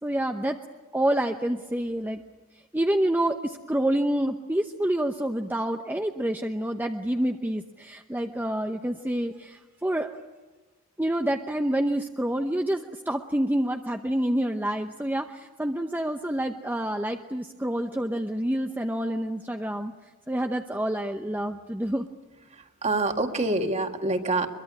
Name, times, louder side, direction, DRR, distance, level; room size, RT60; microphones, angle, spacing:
voice 1, 0.0-0.6 0.9-2.2 2.7-10.2 11.0-19.9 20.3-22.1, right 1 dB, 10° right, 5 dB, 0.8 m, -27 dB
voice 2, 22.5-24.5, right 2 dB, 30° right, 6 dB, 1.9 m, -26 dB
23.5 x 23.0 x 9.6 m, 1.2 s
head